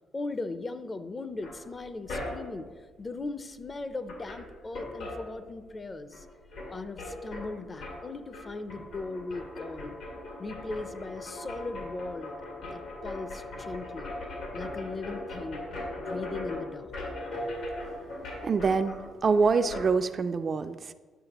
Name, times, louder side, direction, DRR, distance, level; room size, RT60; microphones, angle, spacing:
voice 1, 0.1-6.3 6.7-9.9 10.4-12.3 12.6-14.1 14.5-15.7 16.0-16.9, left 3 dB, 30° left, 11 dB, 0.5 m, -38 dB
sound 1, 1.4-2.7 3.7-3.8 4.0-5.9 6.1-19.9, left 1 dB, 85° left, 2.2 m, -39 dB
voice 2, 18.4-19.0 19.2-20.9, right 5 dB, 45° right, 10 dB, 0.3 m, -25 dB
10.0 x 6.4 x 3.0 m, 1.4 s
cardioid pair, 90°, 0 cm